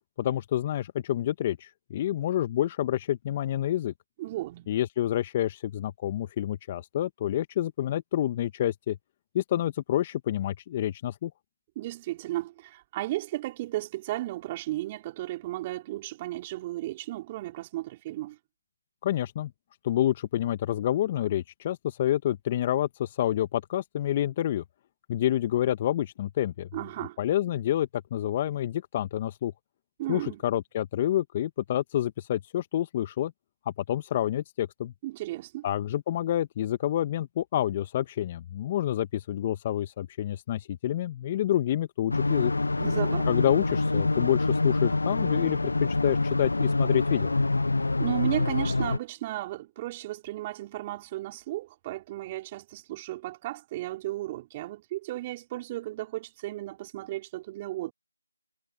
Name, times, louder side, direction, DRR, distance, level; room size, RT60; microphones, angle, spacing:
voice 1, 0.2-3.9 4.7-9.0 9.3-11.3 19.0-19.5 19.8-24.6 25.1-26.7 27.2-29.5 30.1-33.3 33.6-34.9 35.6-42.5 43.3-47.3, left 12 dB, 15° left, 1.4 m, -28 dB
voice 2, 4.2-4.7 11.7-18.4 26.7-27.2 30.0-30.4 35.0-35.7 42.8-43.4 48.0-57.9, right 16 dB, 15° right, 4.7 m, -34 dB
sound 1, 42.1-49.0, left 3 dB, 60° left, 0.6 m, -26 dB
figure-of-eight pair, 165°, 0 cm